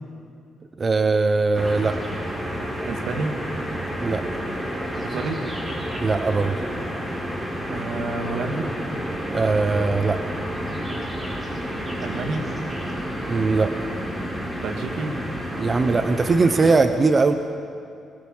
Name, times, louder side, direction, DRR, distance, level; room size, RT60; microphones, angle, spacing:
voice 1, 0.8-2.0 4.0-4.2 6.0-6.5 9.3-10.2 13.3-13.7 15.6-17.3, right 4 dB, 35° right, 8 dB, 1.0 m, -20 dB
sound 1, 1.5-16.7, equal, 20° right, 5.1 m, -30 dB
voice 2, 2.9-3.3 5.0-5.5 7.7-8.7 12.0-12.6 14.6-15.2, right 3 dB, 75° right, 4 dB, 2.2 m, -29 dB
23.5 x 22.0 x 5.6 m, 2.4 s
cardioid pair, 90°, 0 cm